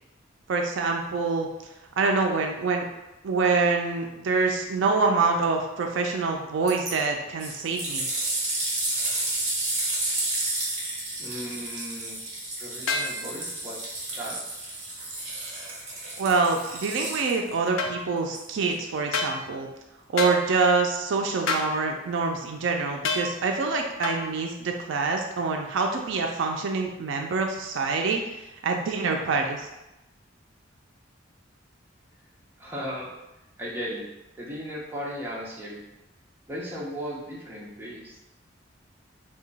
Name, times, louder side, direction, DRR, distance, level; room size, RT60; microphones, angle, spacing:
voice 1, 0.5-1.5 2.0-2.9 3.2-8.1 16.2-19.7 20.1-29.7, right 4 dB, 70° right, 2 dB, 0.4 m, -26 dB
sound 1, 6.7-6.9 7.4-17.6 18.3-18.4, right 2 dB, 35° right, 0.9 m, -31 dB
voice 2, 11.2-12.2 12.6-14.5 32.6-33.1 33.6-34.1 34.4-35.8 36.5-38.2, equal, 10° right, -6 dB, 0.7 m, -36 dB
sound 2, 12.9-13.1 17.8-17.9 19.1-19.3 20.2-20.4 21.5-21.7 23.0-23.3 24.0-24.2, left 3 dB, 80° left, 0.4 m, -27 dB
2.9 x 2.2 x 3.9 m, 0.96 s
head